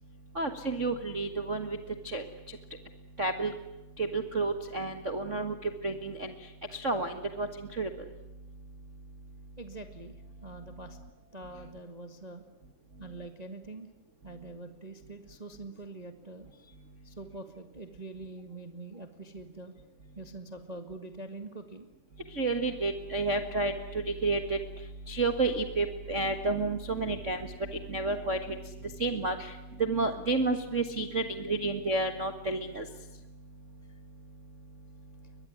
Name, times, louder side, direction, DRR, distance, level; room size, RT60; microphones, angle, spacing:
voice 1, 0.3-1.8 2.1-2.2 3.2-3.5 4.0-5.5 5.8-6.3 6.8-7.5 7.8-7.9 22.4-23.7 24.2-24.6 25.1-27.5 27.9-28.4 29.0-29.5 29.8-32.8, right 3 dB, 50° right, 7 dB, 0.8 m, -30 dB
voice 2, 9.6-12.4 13.0-13.9 14.2-16.8 17.0-19.7 20.1-21.9, right 2 dB, 75° right, 8 dB, 0.3 m, -45 dB
23.0 x 21.0 x 9.5 m, 1.0 s
omnidirectional pair, 4.4 m